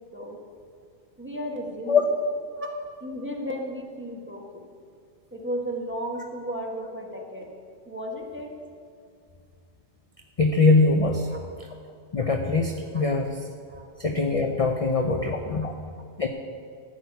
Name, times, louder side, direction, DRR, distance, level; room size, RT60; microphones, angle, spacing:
voice 1, 1.2-2.2 2.6-2.7 3.0-4.7 5.3-7.5 7.9-8.5 11.3-11.4 12.9-13.0 13.7-13.9 15.0-15.7, equal, 10° right, 0 dB, 1.7 m, -34 dB
voice 2, 10.4-11.3 12.1-13.4 14.0-15.7 16.2-16.3, left 3 dB, 35° left, 3 dB, 0.7 m, -22 dB
13.5 x 6.4 x 9.5 m, 2.2 s
omnidirectional pair, 1.2 m